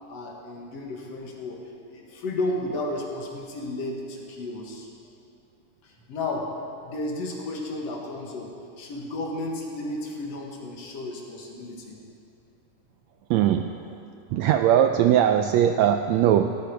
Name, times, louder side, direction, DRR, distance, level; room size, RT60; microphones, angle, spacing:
voice 1, 0.1-4.9 5.8-12.0, left 2 dB, 60° left, 0 dB, 2.4 m, -33 dB
voice 2, 13.3-13.8 14.3-16.6, right 10 dB, 80° right, 7 dB, 1.6 m, -20 dB
17.0 x 13.5 x 4.7 m, 2.5 s
omnidirectional pair, 3.6 m